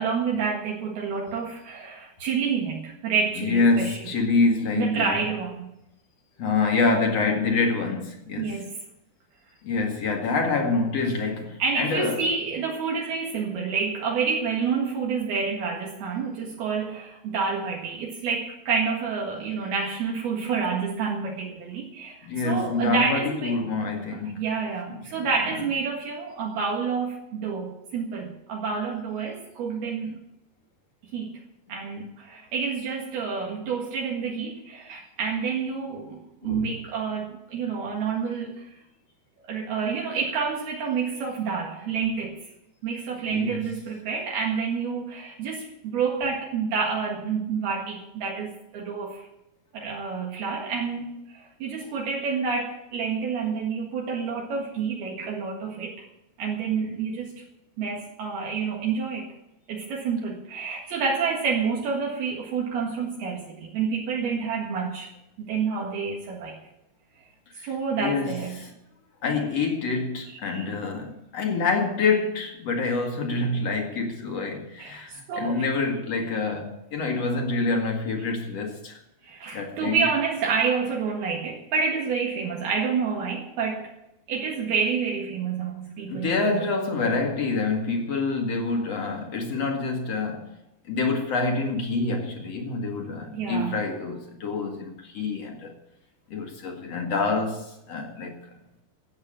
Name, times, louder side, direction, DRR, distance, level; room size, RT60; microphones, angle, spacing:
voice 1, 0.0-4.1 4.8-5.7 8.4-8.8 11.6-23.6 24.1-30.2 31.1-31.4 31.7-38.6 39.5-42.5 42.8-49.3 49.7-56.1 56.4-57.3 57.8-59.3 59.7-65.1 65.4-66.6 67.6-68.6 70.4-70.6 74.8-75.6 79.2-83.9 84.3-86.7 93.3-93.8, right 5 dB, 70° right, 3.7 m, -28 dB
voice 2, 3.4-5.2 6.4-8.5 9.6-12.2 22.2-24.4 24.9-25.0 36.4-36.7 43.3-43.6 67.6-67.7 68.0-68.7 69.2-79.0 79.5-80.0 86.1-90.6 90.9-95.7 96.3-98.4, left 3 dB, 45° left, 2.4 m, -26 dB
14.0 x 8.7 x 8.8 m
omnidirectional pair, 4.8 m